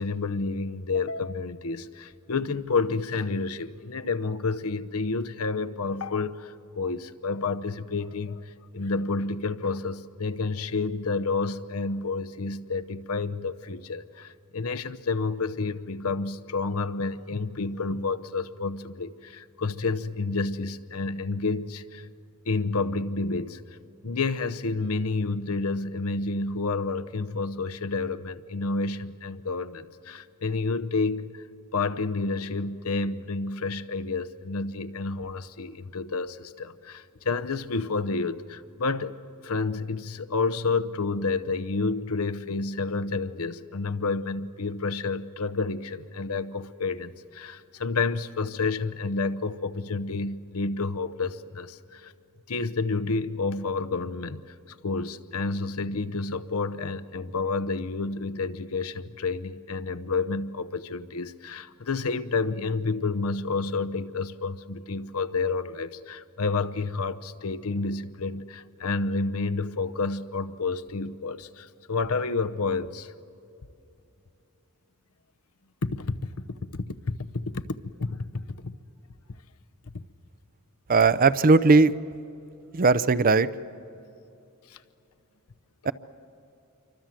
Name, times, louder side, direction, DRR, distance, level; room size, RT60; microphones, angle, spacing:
voice 1, 0.0-22.1 22.5-23.6 24.0-31.4 31.7-39.2 39.4-52.1 52.5-73.1 75.8-76.3 76.6-77.3 77.5-78.7 84.7-84.8, left 3 dB, 75° left, 11 dB, 0.8 m, -30 dB
voice 2, 80.9-81.9 82.7-83.5 85.8-85.9, right 3 dB, 40° right, 15 dB, 0.6 m, -18 dB
27.5 x 24.5 x 7.6 m, 2.8 s
head